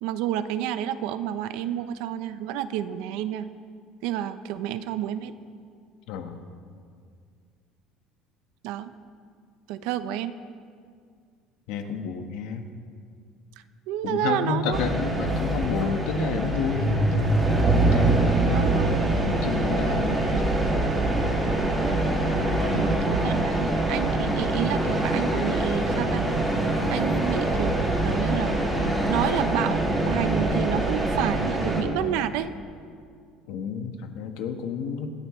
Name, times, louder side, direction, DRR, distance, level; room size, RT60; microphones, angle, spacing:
voice 1, 0.0-3.5 4.0-5.4 8.6-8.9 9.7-10.3 13.9-14.8 18.5-18.9 22.8-26.3 26.9-32.5, right 11 dB, 75° right, 12 dB, 0.8 m, -30 dB
voice 2, 6.1-6.4 11.7-12.7 14.0-17.4 17.9-20.5 22.6-22.9 23.5-23.6 33.5-35.1, left 6 dB, 70° left, 5 dB, 1.4 m, -31 dB
sound 1, 14.7-31.8, right 2 dB, 10° right, 2.5 m, -24 dB
sound 2, 21.0-29.4, left 2 dB, 15° left, 1.6 m, -36 dB
26.5 x 12.5 x 3.3 m, 2.2 s
cardioid pair, 155°, 0 cm